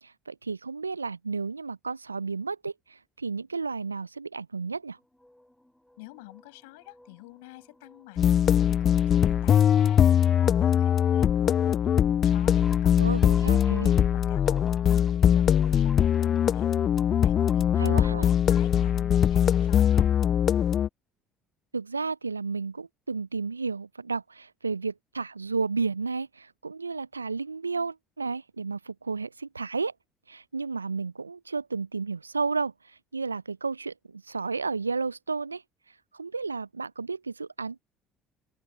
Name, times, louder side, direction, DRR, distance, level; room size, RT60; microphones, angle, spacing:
voice 1, 0.0-5.0 13.0-13.9 17.8-18.3 21.7-29.9 30.3-32.7 33.1-35.6 36.1-37.9, right 4 dB, 85° right, 0.8 m, -32 dB
sound 1, 5.0-14.0 14.5-15.1 15.6-16.4 17.0-17.6 18.0-18.8, left 1 dB, 5° left, 7.1 m, -53 dB
voice 2, 6.0-11.8 12.2-16.7 17.2-20.1, left 25 dB, 65° left, 7.1 m, -48 dB
sound 2, 8.2-20.9, left 9 dB, 40° left, 0.3 m, -22 dB
open air
figure-of-eight pair, 60°, 0 cm